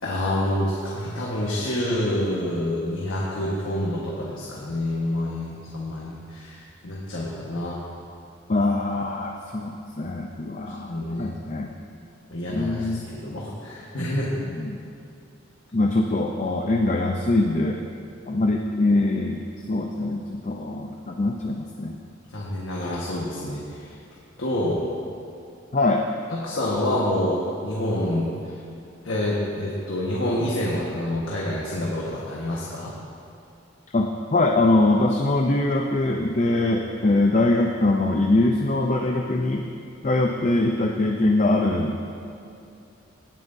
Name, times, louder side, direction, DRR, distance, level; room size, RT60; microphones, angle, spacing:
voice 1, 0.0-7.8 10.9-11.3 12.3-14.3 22.3-24.0 24.4-24.8 26.3-28.6 29.0-33.0, left 1 dB, 85° left, -5 dB, 1.4 m, -27 dB
voice 2, 8.5-11.7 12.5-13.1 14.4-14.8 15.7-17.8 18.3-22.0 25.7-26.0 33.9-39.6 40.0-42.2, left 2 dB, 35° left, 2 dB, 0.5 m, -23 dB
17.5 x 9.3 x 2.7 m, 2.6 s
head